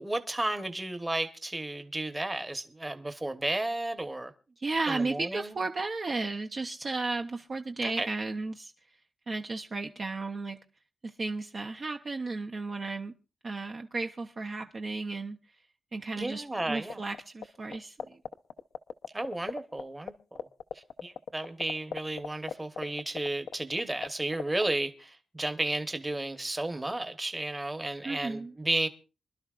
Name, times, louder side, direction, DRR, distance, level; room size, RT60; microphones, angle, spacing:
voice 1, 0.0-4.3 4.9-5.6 7.8-8.1 16.2-17.0 19.1-20.5 20.7-28.9, right 2 dB, 15° right, 1.0 m, -33 dB
voice 2, 4.6-8.7 9.3-10.6 11.0-13.1 13.4-15.4 15.9-18.2 28.0-28.5, right 3 dB, 40° right, 0.7 m, -34 dB
sound 1, 16.9-17.4 17.7-19.8 20.1-20.2 20.4-24.1 24.3-24.7, left 7 dB, 85° left, 0.7 m, -35 dB
25.0 x 12.0 x 2.5 m
wide cardioid pair, 130°, 0 cm